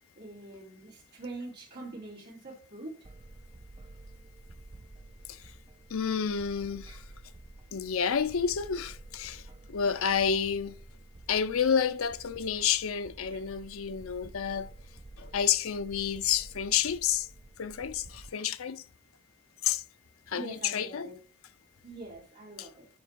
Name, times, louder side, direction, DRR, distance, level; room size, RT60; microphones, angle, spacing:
voice 1, 0.2-3.1 20.3-21.2 21.8-22.9, right 2 dB, 50° right, 3.9 m, -44 dB
sound 1, 3.0-18.3, right 2 dB, 25° right, 0.4 m, -50 dB
voice 2, 5.9-7.0 7.7-10.8 11.3-14.7 15.2-17.3 17.6-18.8 19.6-19.8 20.3-21.1 22.6-22.7, left 7 dB, 70° left, 0.6 m, -30 dB
10.5 x 4.4 x 4.6 m
head